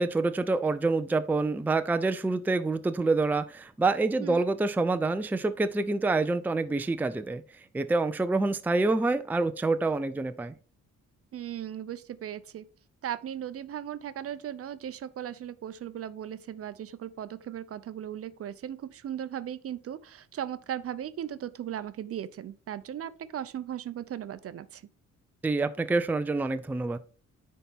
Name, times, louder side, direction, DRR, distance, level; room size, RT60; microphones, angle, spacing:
voice 1, 0.0-7.4 7.7-10.5 25.4-27.0, right 3 dB, 5° right, 0.4 m, -27 dB
voice 2, 11.3-12.7 13.0-24.8, right 10 dB, 50° right, 0.6 m, -37 dB
9.9 x 4.2 x 3.6 m
cardioid pair, 90°, 30 cm